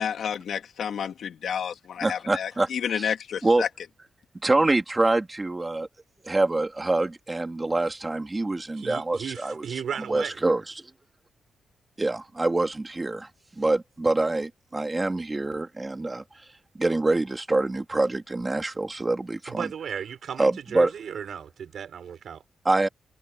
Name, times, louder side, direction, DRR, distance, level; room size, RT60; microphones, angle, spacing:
voice 1, 0.0-3.7, left 8 dB, 65° left, 2.7 m, -30 dB
voice 2, 2.0-2.7 2.9-3.1 3.4-3.6 4.4-5.9 6.2-9.6 10.1-10.9 12.0-16.2 16.7-19.7 20.4-20.9 22.6-22.9, right 2 dB, 15° right, 2.6 m, -25 dB
voice 3, 8.8-10.4 19.5-22.4, right 8 dB, 60° right, 4.5 m, -35 dB
wide cardioid pair, 170°, 0 cm